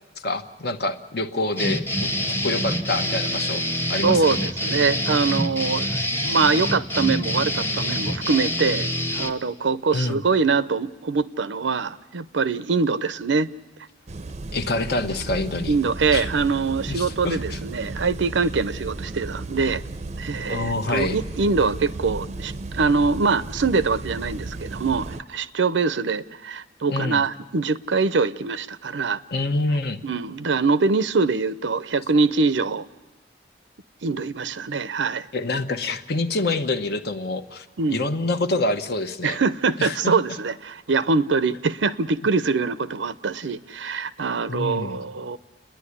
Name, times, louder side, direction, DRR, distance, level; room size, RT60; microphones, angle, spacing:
voice 1, 0.2-3.6 3.9-4.4 9.9-10.2 14.5-15.8 16.1-16.3 16.9-17.6 20.5-21.2 26.9-27.2 29.3-30.0 35.3-39.4 39.8-40.1 44.5-45.0, left 2 dB, 60° left, 1.0 m, -26 dB
sound 1, 1.6-9.3, equal, 15° left, 1.0 m, -26 dB
voice 2, 4.0-5.9 6.2-8.9 9.1-13.5 15.7-19.8 20.2-29.2 30.0-32.9 34.0-35.3 37.8-38.0 39.2-45.4, right 4 dB, 90° right, 0.7 m, -23 dB
sound 2, 14.1-25.2, right 2 dB, 35° right, 0.6 m, -34 dB
30.0 x 10.5 x 9.8 m
head